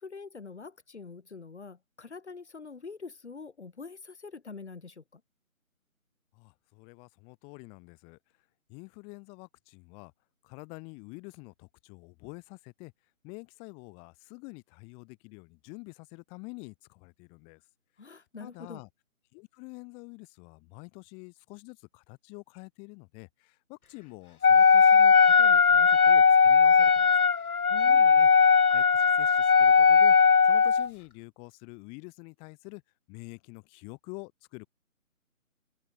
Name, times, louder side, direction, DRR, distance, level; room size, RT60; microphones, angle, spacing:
voice 1, 0.0-5.2 18.0-18.8 27.7-28.4, left 4 dB, 50° left, 5.1 m, -45 dB
voice 2, 6.4-8.2 8.7-10.1 10.4-12.9 13.2-17.6 18.1-18.9 19.3-27.3 27.9-28.3 28.7-30.2 30.4-32.8 33.1-34.7, left 33 dB, 15° left, 7.1 m, -47 dB
Wind instrument woodwind instrument, 24.4-30.9, left 6 dB, 85° left, 0.8 m, -19 dB
open air
figure-of-eight pair, 155°, 43 cm